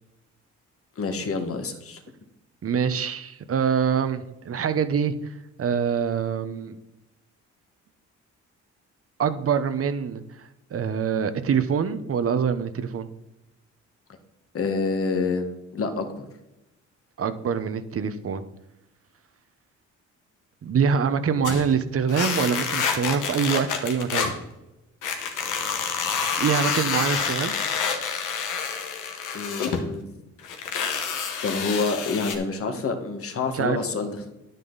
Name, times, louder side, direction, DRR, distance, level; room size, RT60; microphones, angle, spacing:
voice 1, 1.0-2.0 14.5-16.3 29.3-30.1 31.4-34.2, left 4 dB, 50° left, 6 dB, 1.7 m, -27 dB
voice 2, 2.6-5.3 5.6-6.8 9.2-13.1 17.2-18.4 20.6-24.3 26.4-27.5 33.5-33.8, right 7 dB, 50° right, 11 dB, 1.0 m, -25 dB
sound 1, 21.4-21.7 22.1-24.4 25.0-29.8 30.4-32.3, left 6 dB, 85° left, 1.7 m, -28 dB
10.5 x 9.2 x 4.1 m, 0.92 s
cardioid pair, 90°, 30 cm